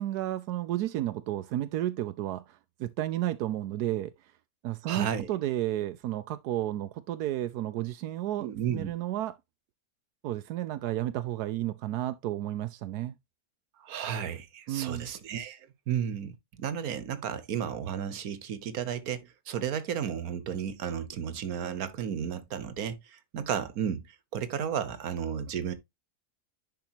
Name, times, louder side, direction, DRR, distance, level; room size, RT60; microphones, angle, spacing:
voice 1, 0.0-4.3 4.6-9.3 10.2-13.1 14.7-15.1, right 13 dB, 90° right, 1.2 m, -32 dB
voice 2, 4.8-5.3 8.4-8.9 13.8-24.1 24.3-25.7, right 8 dB, 70° right, 1.5 m, -33 dB
10.5 x 5.0 x 2.9 m
omnidirectional pair, 1.6 m